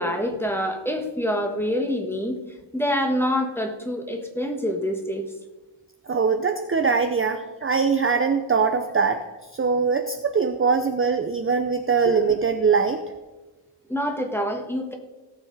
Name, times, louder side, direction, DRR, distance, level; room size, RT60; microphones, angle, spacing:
voice 1, 0.0-2.4 2.7-5.3 12.0-12.1 13.9-14.9, equal, 5° left, 3 dB, 1.4 m, -26 dB
voice 2, 6.1-9.2 9.5-13.0, right 5 dB, 25° right, 6 dB, 0.6 m, -22 dB
17.0 x 7.3 x 4.0 m, 1.2 s
wide cardioid pair, 145°, 49 cm